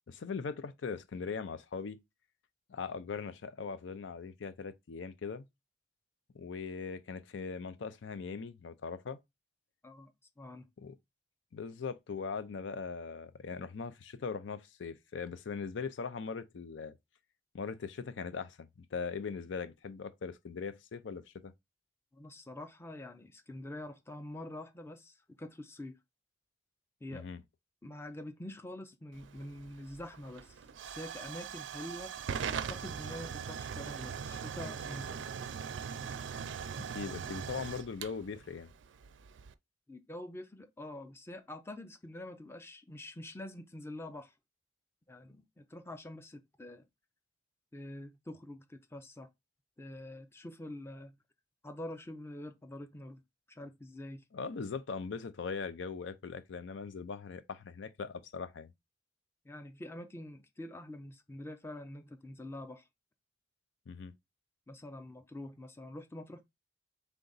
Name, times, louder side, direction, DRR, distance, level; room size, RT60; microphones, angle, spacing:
voice 1, 0.1-2.0 2.7-5.5 6.3-9.2 10.8-10.9 11.5-16.9 17.5-21.5 27.1-27.4 36.9-38.7 54.3-58.7 63.9-64.1, left 5 dB, 90° left, 0.5 m, -40 dB
voice 2, 10.4-10.7 22.1-26.0 27.0-27.3 27.8-30.6 30.8-32.1 32.5-35.2 39.9-44.3 45.1-46.8 47.7-49.3 49.8-51.2 51.6-53.2 53.5-54.2 59.4-62.8 64.7-66.4, left 1 dB, 15° left, 0.5 m, -46 dB
Hiss / Fire / Tick, 29.1-39.5, right 7 dB, 90° right, 0.4 m, -41 dB
3.9 x 3.4 x 3.9 m
head